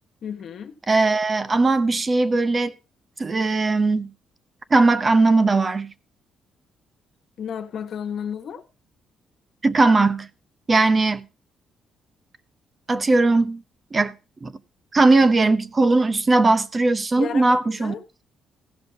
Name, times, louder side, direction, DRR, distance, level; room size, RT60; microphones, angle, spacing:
voice 1, 0.2-0.8 7.4-8.6 17.2-18.0, left 8 dB, 65° left, 1.3 m, -32 dB
voice 2, 0.9-2.7 3.2-4.1 4.7-5.9 9.6-10.3 10.7-11.2 12.9-13.6 13.9-14.1 14.4-14.5 14.9-17.9, right 3 dB, 30° right, 0.7 m, -19 dB
16.0 x 5.5 x 5.3 m
cardioid pair, 90°, 0 cm